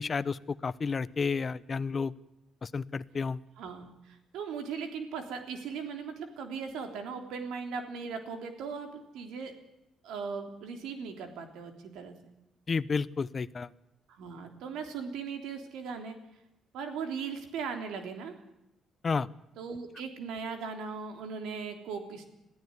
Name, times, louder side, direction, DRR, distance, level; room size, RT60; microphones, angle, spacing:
voice 1, 0.0-2.1 2.6-3.4 12.7-13.7 19.0-19.3, left 5 dB, 40° left, 18 dB, 0.8 m, -31 dB
voice 2, 3.6-9.5 10.0-12.1 14.1-16.2 16.7-18.3 19.6-22.2, right 5 dB, 90° right, 5 dB, 3.4 m, -38 dB
21.5 x 14.5 x 9.8 m, 0.88 s
cardioid pair, 90°, 0 cm